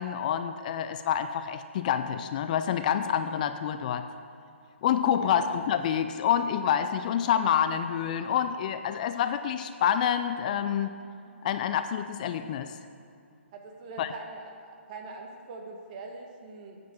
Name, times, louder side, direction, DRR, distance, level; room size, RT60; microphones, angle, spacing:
voice 1, 0.0-4.1 4.8-10.9 11.4-12.7 14.0-14.1, left 9 dB, 35° left, 10 dB, 0.4 m, -27 dB
voice 2, 5.2-5.5 13.5-16.8, right 3 dB, 35° right, 2 dB, 1.3 m, -43 dB
9.2 x 5.2 x 7.1 m, 2.4 s
hypercardioid pair, 140°, 7 cm